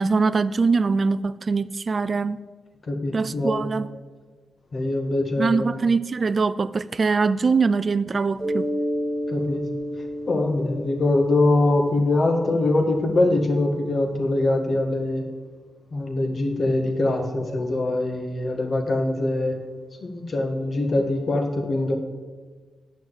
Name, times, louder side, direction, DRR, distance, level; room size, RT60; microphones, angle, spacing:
voice 1, 0.0-2.4 3.1-3.9 5.4-8.7, right 4 dB, 50° right, 16 dB, 0.3 m, -22 dB
voice 2, 2.9-3.7 4.7-5.7 9.3-9.6 10.3-15.3 15.9-19.5 20.0-21.9, left 2 dB, 50° left, 3 dB, 1.7 m, -23 dB
Mallet percussion, 8.4-12.8, equal, 10° left, 2.1 m, -31 dB
9.3 x 6.2 x 7.1 m, 1.4 s
cardioid pair, 60°, 0 cm